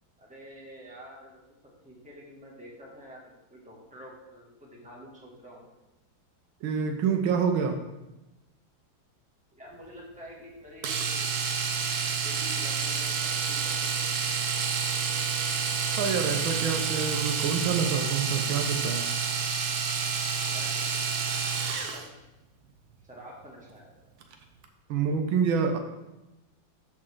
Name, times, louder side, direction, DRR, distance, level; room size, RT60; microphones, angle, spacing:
voice 1, 0.2-1.4 1.8-5.7 9.5-11.4 12.0-14.1 20.4-20.8 21.9-22.0 23.1-23.9, equal, 5° right, -4 dB, 1.9 m, -48 dB
voice 2, 6.6-7.8 15.8-19.1 24.9-25.8, right 6 dB, 85° right, 5 dB, 1.6 m, -27 dB
Domestic sounds home sounds, 10.8-22.1 24.2-24.3 24.6-24.7, right 6 dB, 60° right, 1.2 m, -29 dB
13.0 x 4.4 x 3.8 m, 1.0 s
omnidirectional pair, 2.1 m